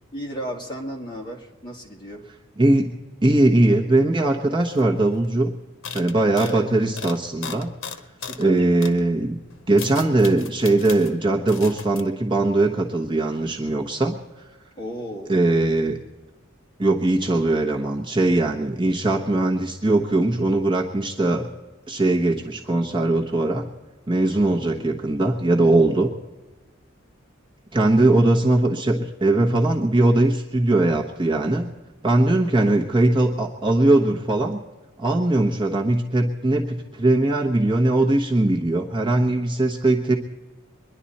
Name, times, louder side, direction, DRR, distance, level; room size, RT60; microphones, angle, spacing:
voice 1, 0.1-2.2 6.4-6.7 8.2-8.6 14.8-15.3 24.7-24.9 32.6-32.8, right 1 dB, 20° left, -1 dB, 2.2 m, -34 dB
voice 2, 2.6-2.9 3.2-5.5 5.9-7.7 8.4-9.4 9.7-14.2 15.3-16.0 16.8-21.5 21.9-23.7 24.1-26.1 27.7-31.7 32.0-34.6 35.0-40.1, right 2 dB, 25° right, -1 dB, 1.1 m, -20 dB
sound 1, 4.7-5.3 5.8-8.5 8.8-9.0 9.5-11.1 11.5-12.0, left 6 dB, 75° left, 1.0 m, -37 dB
24.0 x 11.0 x 4.2 m, 1.1 s
head